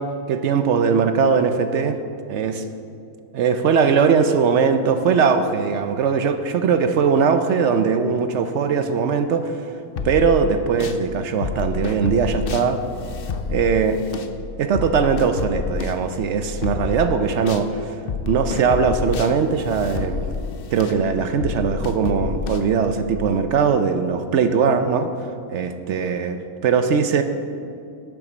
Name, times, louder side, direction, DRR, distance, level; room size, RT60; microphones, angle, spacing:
voice 1, 0.0-2.0 2.3-2.6 3.3-9.6 10.0-12.8 13.5-14.0 14.6-17.9 18.3-20.3 20.7-25.1 25.5-27.2, right 6 dB, 65° right, 8 dB, 0.8 m, -20 dB
sound 1, 10.0-11.0 11.4-17.7 18.1-23.3, left 5 dB, 55° left, 0.7 m, -29 dB
10.0 x 7.1 x 6.1 m, 2.4 s
omnidirectional pair, 1.5 m